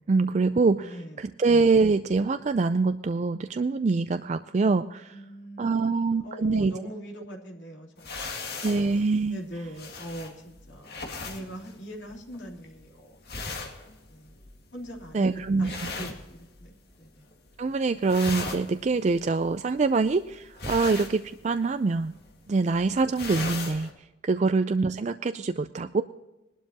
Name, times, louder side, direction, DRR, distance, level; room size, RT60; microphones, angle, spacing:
voice 1, 0.1-5.2 5.6-6.7 8.6-9.4 15.1-15.9 17.6-22.1 22.5-23.9 24.2-26.0, right 4 dB, 40° right, 10 dB, 0.4 m, -24 dB
voice 2, 0.8-1.3 5.1-8.7 9.3-13.2 14.1-14.4 14.7-15.3 15.6-17.3 24.3-24.5, equal, 85° left, -1 dB, 3.2 m, -42 dB
sound 1, 8.0-16.9 17.2-17.7 17.9-23.9, left 3 dB, 60° left, 2.1 m, -39 dB
20.5 x 12.0 x 2.8 m, 0.98 s
head